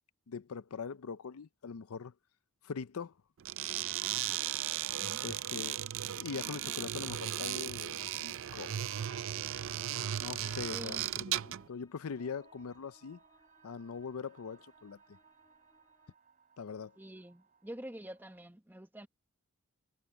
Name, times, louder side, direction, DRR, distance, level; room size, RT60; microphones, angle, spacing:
voice 1, 0.3-2.1 2.6-3.1 5.2-5.8 6.2-8.8 10.2-13.2 13.6-15.2 16.6-16.9, left 5 dB, 85° left, 0.5 m, -42 dB
sound 1, 3.4-11.7, right 12 dB, 65° right, 0.5 m, -36 dB
voice 2, 4.9-5.2 10.7-11.1 17.0-19.1, right 1 dB, 10° right, 1.2 m, -47 dB
sound 2, 6.7-16.2, left 1 dB, 15° left, 1.8 m, -68 dB
sound 3, 12.2-18.5, right 6 dB, 40° right, 3.5 m, -65 dB
head